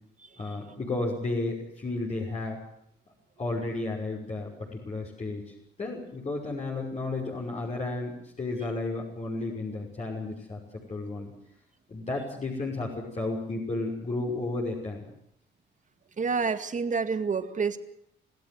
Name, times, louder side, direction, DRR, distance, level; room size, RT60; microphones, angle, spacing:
voice 1, 0.4-2.6 3.4-10.6 10.9-11.3 11.9-15.0, left 2 dB, 35° left, -2 dB, 5.8 m, -33 dB
voice 2, 16.2-17.8, right 5 dB, 40° right, 10 dB, 2.1 m, -28 dB
27.0 x 16.0 x 7.9 m, 0.72 s
cardioid pair, 90°, 20 cm